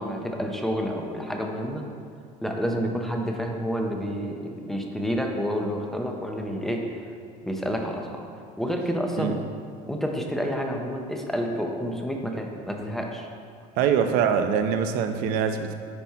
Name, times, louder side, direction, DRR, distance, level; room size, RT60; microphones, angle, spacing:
voice 1, 0.0-1.8 2.4-6.8 7.4-8.2 8.6-9.4 9.9-13.3, equal, ahead, 2 dB, 0.5 m, -29 dB
voice 2, 13.8-15.7, right 7 dB, 70° right, 7 dB, 0.6 m, -23 dB
10.0 x 4.2 x 4.6 m, 2.3 s
cardioid pair, 175°, 16 cm